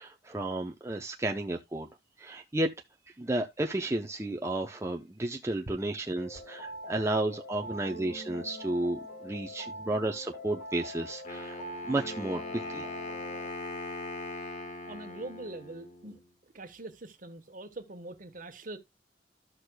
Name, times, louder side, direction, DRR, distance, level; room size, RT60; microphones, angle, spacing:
voice 1, 0.0-1.9 2.2-2.7 3.2-11.6 11.9-12.9, right 1 dB, 15° right, 0.6 m, -32 dB
sound 1, 6.1-13.5, equal, 65° left, 2.0 m, -43 dB
Wind instrument woodwind instrument, 11.2-16.2, left 2 dB, 40° left, 1.5 m, -40 dB
voice 2, 14.9-18.8, right 2 dB, 50° right, 1.2 m, -43 dB
13.0 x 6.3 x 2.2 m
head